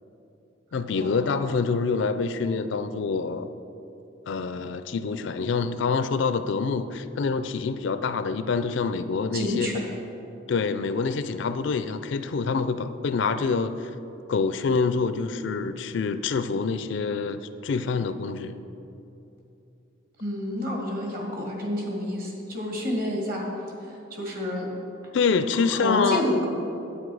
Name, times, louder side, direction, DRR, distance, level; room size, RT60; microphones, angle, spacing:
voice 1, 0.7-3.5 4.3-9.7 10.5-13.9 14.3-18.6 25.1-26.4, left 4 dB, 60° left, 11 dB, 0.4 m, -26 dB
voice 2, 9.3-9.8 20.2-23.5 23.8-24.7 25.8-26.5, equal, 45° right, -1 dB, 1.9 m, -29 dB
9.8 x 8.4 x 4.8 m, 2.9 s
head